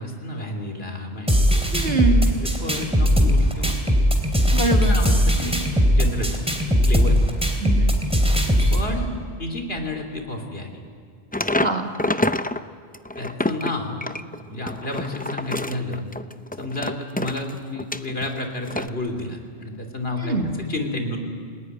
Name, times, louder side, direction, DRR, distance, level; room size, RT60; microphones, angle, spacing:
voice 1, 0.0-1.7 2.4-3.7 4.8-5.6 5.9-6.4 6.9-7.2 8.7-9.1 9.4-10.8 13.2-14.0 14.5-16.0 16.6-21.2, left 2 dB, 65° left, 4 dB, 3.4 m, -31 dB
sound 1, 1.3-8.8, equal, 5° right, 3.2 m, -19 dB
voice 2, 1.7-2.3 4.5-5.0 7.6-7.9 11.6-11.9 20.2-20.5, right 3 dB, 65° right, 2 dB, 2.8 m, -24 dB
sound 2, 11.3-12.6 12.9-18.3 18.7-18.9, left 1 dB, 10° left, 0.5 m, -27 dB
30.0 x 19.0 x 9.6 m, 2.3 s
omnidirectional pair, 1.1 m